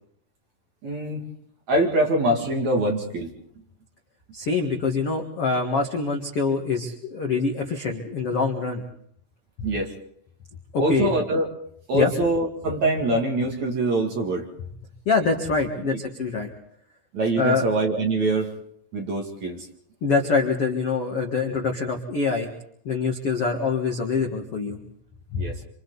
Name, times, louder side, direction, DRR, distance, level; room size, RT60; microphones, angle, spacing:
voice 1, 0.8-1.2 1.7-3.3 9.6-9.9 10.8-11.5 11.9-14.5 17.1-18.5 18.9-19.7 25.4-25.5, right 2 dB, 45° right, 0 dB, 2.9 m, -24 dB
voice 2, 4.3-8.8 10.7-11.2 11.9-12.1 15.0-16.5 17.4-17.6 20.0-22.5 22.8-24.8 25.3-25.4, left 4 dB, 70° left, 2 dB, 1.3 m, -24 dB
27.0 x 26.5 x 4.1 m, 0.67 s
omnidirectional pair, 5.7 m